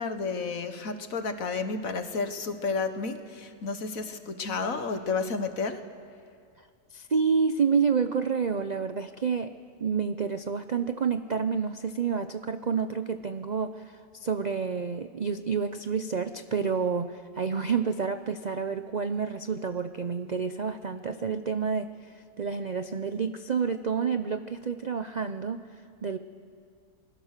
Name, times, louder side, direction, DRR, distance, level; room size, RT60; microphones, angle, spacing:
voice 1, 0.0-5.8, left 4 dB, 60° left, 8 dB, 1.6 m, -31 dB
voice 2, 6.9-25.7 26.0-26.2, right 6 dB, 55° right, 9 dB, 0.4 m, -29 dB
28.5 x 21.5 x 6.6 m, 2.2 s
omnidirectional pair, 1.7 m